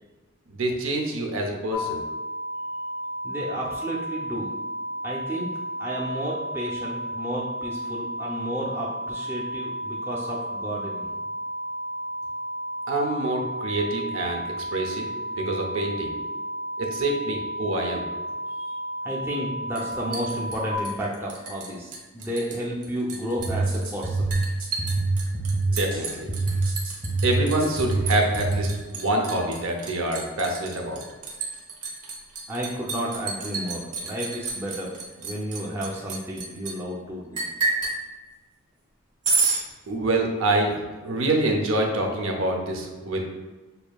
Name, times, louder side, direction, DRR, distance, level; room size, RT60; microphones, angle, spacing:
voice 1, 0.5-2.0 12.9-14.4 14.7-15.1 15.4-16.1 16.8-18.0 25.7-26.3 27.2-28.7 28.9-31.0 39.9-40.8 41.0-43.3, right 2 dB, 65° right, 2 dB, 0.7 m, -26 dB
sound 1, 1.7-20.7, equal, 85° left, 0.5 m, -33 dB
voice 2, 3.2-4.5 5.0-5.5 5.8-11.1 18.5-18.8 19.0-24.4 32.5-34.9 35.1-37.4, equal, 10° right, -5 dB, 0.5 m, -32 dB
Liquid, 19.8-21.7 21.9-22.6 22.8-36.7 37.3-38.0 39.2-39.6, right 4 dB, 90° right, 1.0 m, -30 dB
sound 2, 23.4-28.6, right 2 dB, 40° right, 1.4 m, -26 dB
6.6 x 2.6 x 2.3 m, 1.2 s
head